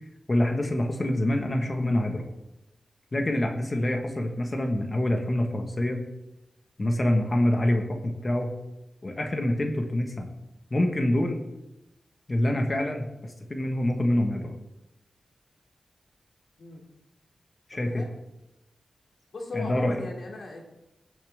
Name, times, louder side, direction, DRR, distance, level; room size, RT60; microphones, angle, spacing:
voice 1, 0.3-2.2 3.1-6.0 6.8-8.5 9.0-10.3 10.7-11.4 12.3-14.5 17.7-18.0 19.5-20.0, left 1 dB, 35° left, 3 dB, 1.4 m, -26 dB
voice 2, 17.7-18.1 19.3-20.6, left 3 dB, 75° left, -1 dB, 2.8 m, -38 dB
16.5 x 7.2 x 3.6 m, 0.93 s
wide cardioid pair, 80°, 0 cm